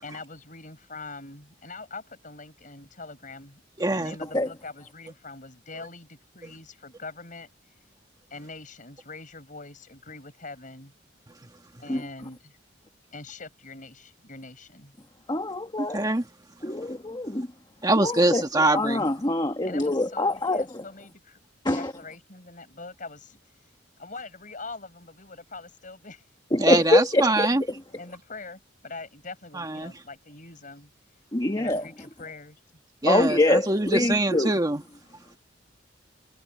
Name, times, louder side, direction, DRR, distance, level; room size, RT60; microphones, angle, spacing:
voice 1, 0.0-3.6 3.9-7.5 8.3-10.9 11.8-12.6 13.1-14.9 19.6-21.4 21.7-23.4 24.0-26.3 26.9-27.6 27.9-30.9 31.5-32.6, left 3 dB, 45° left, 6.2 m, -43 dB
voice 2, 3.8-4.1 15.8-16.2 17.8-19.1 26.6-27.6 29.5-29.9 33.0-34.8, right 2 dB, 20° right, 1.5 m, -24 dB
voice 3, 15.3-16.0 16.6-17.5 18.0-18.4 18.7-20.6 21.6-21.9 26.5-27.5 31.3-31.8 33.1-34.5, left 2 dB, 20° left, 1.3 m, -24 dB
head